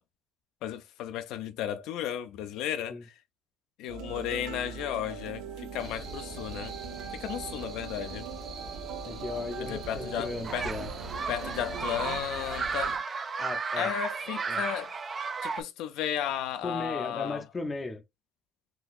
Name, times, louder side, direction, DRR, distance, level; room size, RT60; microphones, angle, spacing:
voice 1, 0.6-3.2 3.8-6.8 7.1-8.3 9.6-10.7 11.3-13.0 13.8-14.9 15.4-17.4, left 10 dB, 75° left, 0.5 m, -34 dB
sound 1, 3.9-12.2, right 6 dB, 80° right, 0.6 m, -41 dB
sound 2, 5.8-13.0, right 2 dB, 45° right, 1.0 m, -43 dB
voice 2, 9.0-10.9 13.4-13.9 14.5-14.6 16.6-18.0, left 3 dB, 20° left, 0.5 m, -36 dB
sound 3, 10.4-15.6, right 5 dB, 30° right, 0.4 m, -34 dB
3.8 x 2.7 x 2.4 m
cardioid pair, 125°, 0 cm